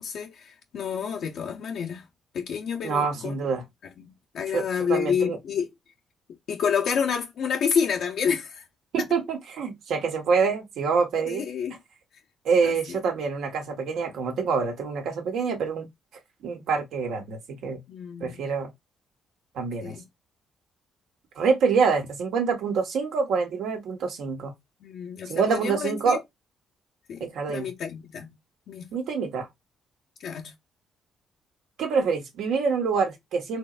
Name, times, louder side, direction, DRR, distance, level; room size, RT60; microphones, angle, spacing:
voice 1, 0.0-2.1 2.3-3.3 3.8-5.7 6.5-8.6 11.3-11.8 12.6-13.0 17.9-18.4 19.8-20.1 24.8-26.2 27.1-28.3 28.7-28.9 30.2-30.5, left 7 dB, 70° left, 0.6 m, -29 dB
voice 2, 2.8-3.6 4.5-5.4 8.9-11.4 12.4-15.9 16.4-17.8 18.2-18.7 19.5-20.0 21.4-24.5 25.3-26.2 27.2-27.7 28.9-29.5 31.8-33.6, right 5 dB, 80° right, 1.5 m, -26 dB
4.3 x 3.1 x 2.5 m
cardioid pair, 90°, 0 cm